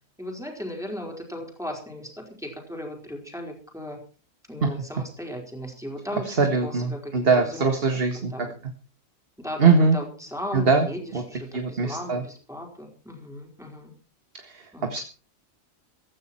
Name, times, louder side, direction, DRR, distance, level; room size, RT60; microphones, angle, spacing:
voice 1, 0.2-4.0 4.5-8.5 9.4-13.9 14.7-14.9, equal, ahead, 1 dB, 4.6 m, -37 dB
voice 2, 6.3-8.3 9.6-10.0 10.5-10.9 11.1-11.2 11.5-12.2 14.4-15.0, right 4 dB, 45° right, 6 dB, 1.9 m, -22 dB
16.0 x 14.5 x 4.4 m, 0.36 s
omnidirectional pair, 1.4 m